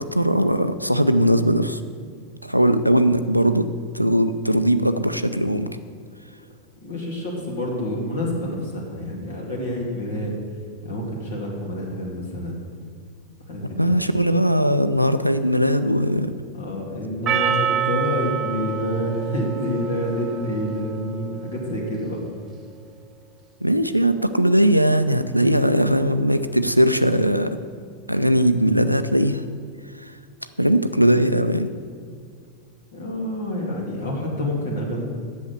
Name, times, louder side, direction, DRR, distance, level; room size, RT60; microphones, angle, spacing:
voice 1, 0.0-1.8 2.4-3.7 3.9-5.7 13.8-16.3 23.6-27.6 28.1-29.4 30.0-30.1 30.6-31.7, equal, 90° right, 10 dB, 0.4 m, -19 dB
voice 2, 6.8-10.4 10.8-12.6 13.5-13.8 16.5-22.2 32.9-35.0, left 1 dB, 65° left, -2 dB, 2.3 m, -28 dB
Percussion, 17.3-21.6, right 8 dB, 25° right, 1.1 m, -27 dB
8.4 x 6.4 x 8.0 m, 2.2 s
figure-of-eight pair, 90°, 0 cm